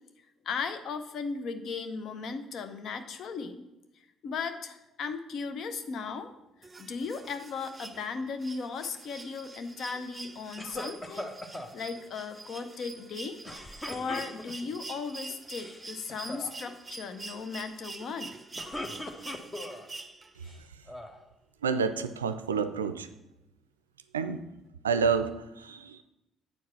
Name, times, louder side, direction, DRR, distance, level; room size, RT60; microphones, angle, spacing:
voice 1, 0.4-3.6 4.2-6.3 6.8-11.3 11.7-13.4 13.9-18.3, left 5 dB, 55° left, 10 dB, 0.7 m, -36 dB
sound 1, 6.6-20.5 22.0-22.1, right 3 dB, 25° right, 0.7 m, -45 dB
sound 2, 10.6-11.7 13.4-14.7 15.4-15.8 16.1-16.5 18.3-19.9 20.4-21.2, left 1 dB, 25° left, 1.1 m, -40 dB
voice 2, 21.6-23.1 24.1-24.4 24.8-26.0, right 5 dB, 85° right, 11 dB, 0.4 m, -29 dB
7.9 x 4.7 x 5.8 m, 0.93 s
figure-of-eight pair, 50°, 0 cm